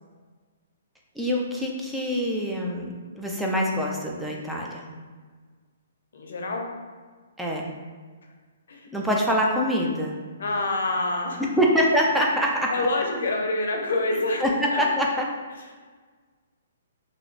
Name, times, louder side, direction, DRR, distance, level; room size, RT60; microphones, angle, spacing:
voice 1, 1.2-4.8 7.4-7.7 8.9-10.2 11.6-12.7 14.4-15.3, equal, 5° right, -2 dB, 0.4 m, -24 dB
voice 2, 6.1-6.7 8.7-8.9 10.4-11.5 12.7-14.8 15.6-15.7, left 2 dB, 75° left, 1 dB, 0.6 m, -27 dB
2.9 x 2.1 x 4.0 m, 1.5 s
hypercardioid pair, 145°, 0 cm